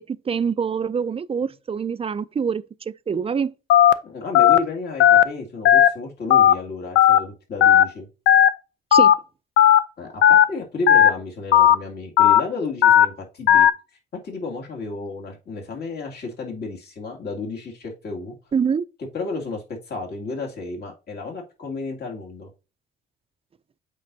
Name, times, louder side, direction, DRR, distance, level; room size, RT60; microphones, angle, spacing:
voice 1, 0.0-2.6 3.1-3.5 8.9-9.1 18.5-18.8, right 6 dB, 30° right, 0.4 m, -25 dB
Telephone, 3.7-3.9 4.3-4.6 5.0-5.2 5.6-5.9 6.3-6.5 6.9-7.2 7.6-7.8 8.3-8.5 8.9-9.1 9.6-9.8 10.2-10.4 10.9-11.1 11.5-11.7 12.2-12.4 12.8-13.0 13.5-13.7, left 10 dB, 85° left, 0.6 m, -13 dB
voice 2, 4.0-8.1 10.0-13.7 14.2-18.3 19.1-22.5, left 3 dB, 55° left, 2.5 m, -32 dB
8.2 x 5.2 x 2.8 m
cardioid pair, 90°, 20 cm